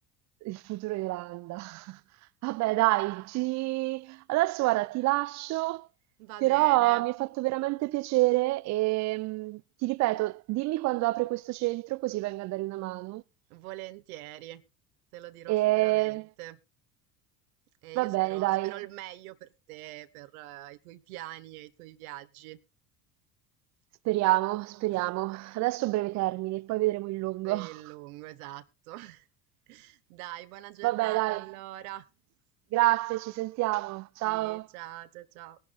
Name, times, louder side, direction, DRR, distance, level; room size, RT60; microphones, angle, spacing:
voice 1, 0.4-2.0 2.4-5.9 6.4-13.2 15.5-16.3 18.0-18.8 24.0-27.8 30.8-31.5 32.7-34.7, right 19 dB, 35° right, 0.5 m, -28 dB
voice 2, 6.2-7.1 13.5-14.6 15.1-16.6 17.8-22.6 24.9-25.0 27.4-29.3 29.7-32.1 34.2-35.6, right 16 dB, 60° right, 1.1 m, -44 dB
20.0 x 11.0 x 2.3 m
figure-of-eight pair, 70°, 50 cm